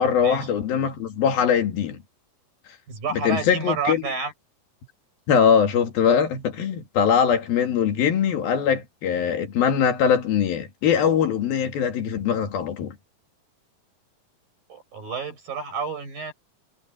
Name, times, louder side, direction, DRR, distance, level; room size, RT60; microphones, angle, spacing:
voice 1, 0.0-2.0 3.1-4.0 5.3-13.0, left 7 dB, 90° left, 4.2 m, -22 dB
voice 2, 2.9-4.3 14.7-16.3, right 4 dB, 75° right, 9.6 m, -30 dB
omnidirectional pair, 4.1 m